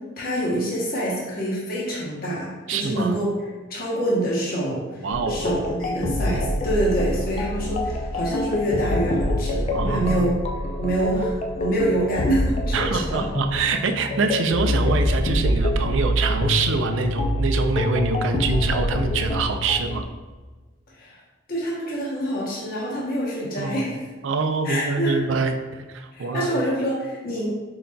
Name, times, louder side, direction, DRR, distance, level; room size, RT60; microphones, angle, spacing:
voice 1, 0.2-3.3 3.7-10.4 10.8-13.3 21.0-21.2 21.5-24.1 24.6-25.1 26.1-27.5, right 1 dB, 50° left, -5 dB, 0.9 m, -26 dB
voice 2, 2.7-3.1 5.0-5.5 9.7-10.3 12.7-20.1 23.6-23.9 24.2-26.6, right 4 dB, 70° right, 7 dB, 0.4 m, -25 dB
sound 1, 5.1-20.0, left 1 dB, 30° left, 0.3 m, -25 dB
4.7 x 3.9 x 2.2 m, 1.3 s
head